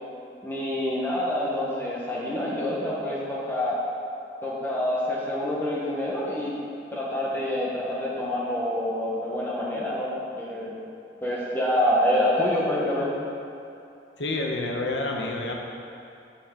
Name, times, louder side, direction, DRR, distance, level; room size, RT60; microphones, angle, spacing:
voice 1, 0.4-3.8 4.4-6.5 6.9-10.7 11.2-13.1, left 1 dB, 10° left, -6 dB, 1.1 m, -27 dB
voice 2, 14.2-15.5, left 2 dB, 80° left, 0 dB, 1.1 m, -28 dB
8.7 x 7.1 x 3.7 m, 2.7 s
head